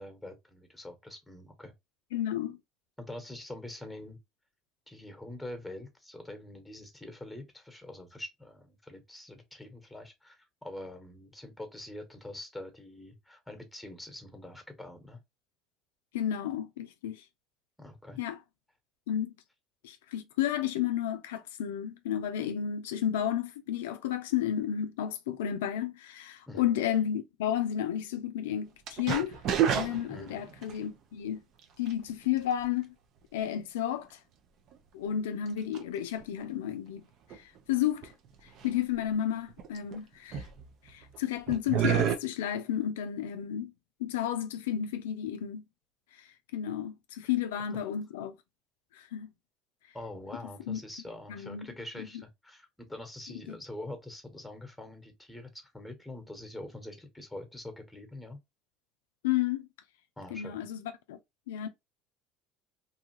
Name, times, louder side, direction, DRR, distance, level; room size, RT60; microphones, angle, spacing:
voice 1, 0.0-1.7 3.0-4.2 4.9-15.2 17.8-18.2 26.5-26.6 30.1-30.4 49.9-58.4 60.2-60.6, left 1 dB, 5° left, 1.1 m, -44 dB
voice 2, 2.1-2.6 16.1-17.2 18.2-18.4 19.1-19.3 19.8-29.4 29.8-31.4 31.8-32.9 33.3-34.2 34.9-37.0 37.3-38.1 38.4-40.5 40.8-43.7 44.0-45.6 46.2-48.4 48.9-49.3 50.7-50.8 51.3-51.7 53.5-53.6 59.2-59.7 60.3-60.8 61.1-61.2 61.5-61.7, left 10 dB, 85° left, 0.3 m, -32 dB
sound 1, 28.9-30.8 31.9-32.1 32.6-32.7 34.7-34.8 35.7-35.8 36.2-36.4 37.3-37.4 38.0-38.1 38.4-38.9 39.5-40.0 40.3-41.2 41.5-42.2, right 8 dB, 60° right, 0.6 m, -29 dB
2.6 x 2.3 x 2.8 m
hypercardioid pair, 80°, 0 cm